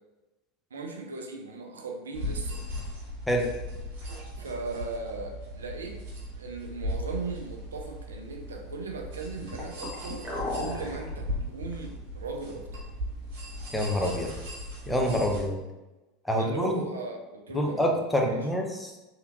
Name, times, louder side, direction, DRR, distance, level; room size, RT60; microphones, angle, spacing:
voice 1, 0.7-2.6 4.4-6.0 6.4-10.3 10.5-12.9 16.4-18.5, right 3 dB, 80° right, 2 dB, 0.4 m, -38 dB
sound 1, 2.1-15.4, equal, 60° right, 1.5 m, -38 dB
sound 2, 7.9-8.1 8.3-8.4 9.4-11.4 11.7-11.8 12.6-12.7 13.0-13.1, left 1 dB, 15° right, 1.3 m, -35 dB
voice 2, 13.7-14.3 14.9-15.6 16.3-16.8 17.5-18.9, equal, 5° left, 1 dB, 0.6 m, -26 dB
3.5 x 2.8 x 2.6 m, 1.0 s
figure-of-eight pair, 80°, 0 cm